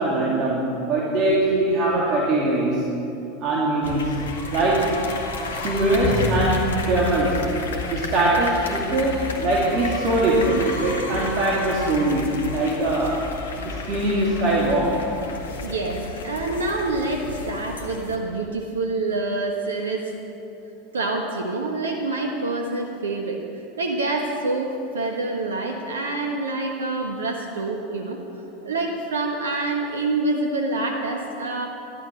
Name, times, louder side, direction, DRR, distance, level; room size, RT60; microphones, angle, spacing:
voice 1, 0.0-2.8 3.4-4.2 4.5-4.9 5.6-7.5 7.9-13.2 13.6-15.0, right 2 dB, 45° right, -5 dB, 2.7 m, -22 dB
sound 1, 3.8-18.1, left 3 dB, 75° left, 1.8 m, -31 dB
voice 2, 15.6-20.1 20.9-23.4 23.8-28.2 28.6-31.7, right 2 dB, 80° right, 1 dB, 1.3 m, -26 dB
15.5 x 12.0 x 6.5 m, 2.9 s
figure-of-eight pair, 85°, 0 cm